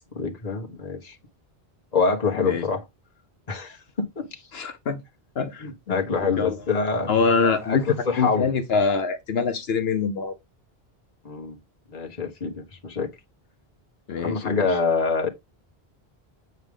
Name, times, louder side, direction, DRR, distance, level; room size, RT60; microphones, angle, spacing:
voice 1, 0.1-1.1 1.9-2.8 3.5-4.4 5.6-7.1 7.6-8.5 11.2-11.6 11.9-13.1 14.2-15.3, left 4 dB, 40° left, 1.5 m, -26 dB
voice 2, 2.3-2.7 4.5-5.0 5.4-6.8 7.1-7.9 8.2-10.3 14.1-14.8, left 5 dB, 75° left, 1.0 m, -25 dB
Car / Accelerating revving vroom, 6.4-8.6, equal, 5° right, 1.1 m, -45 dB
8.1 x 4.9 x 3.7 m
omnidirectional pair, 1.1 m